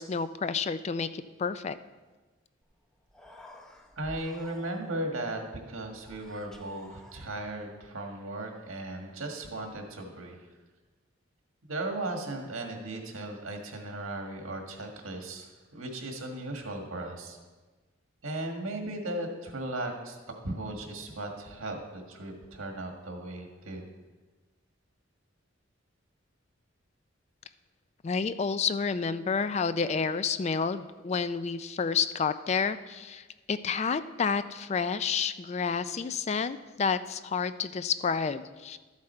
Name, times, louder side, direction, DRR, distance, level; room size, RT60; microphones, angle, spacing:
voice 1, 0.0-1.8 28.0-38.8, left 5 dB, 30° left, 13 dB, 0.3 m, -30 dB
Human voice, 2.6-2.7 3.0-5.1 6.0-7.7, left 1 dB, 5° left, 0.7 m, -52 dB
voice 2, 4.0-10.4 11.7-17.4 18.2-20.2 20.4-23.9, right 1 dB, 85° right, 3 dB, 1.6 m, -37 dB
13.0 x 7.4 x 4.4 m, 1.3 s
head